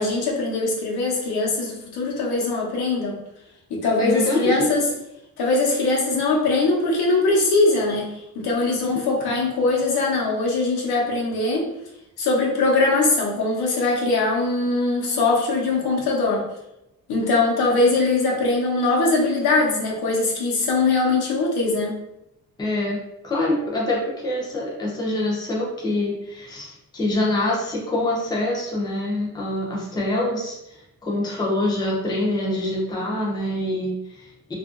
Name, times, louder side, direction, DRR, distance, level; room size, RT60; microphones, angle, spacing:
voice 1, 0.0-3.2 3.7-4.9 5.4-8.1 8.4-11.6 12.2-16.4 17.1-21.9, left 3 dB, 80° left, -1 dB, 0.8 m, -21 dB
voice 2, 4.0-4.7 8.9-9.1 22.6-23.0 23.2-34.5, left 1 dB, 10° left, -4 dB, 0.5 m, -25 dB
2.8 x 2.4 x 2.4 m, 0.85 s
wide cardioid pair, 165°, 37 cm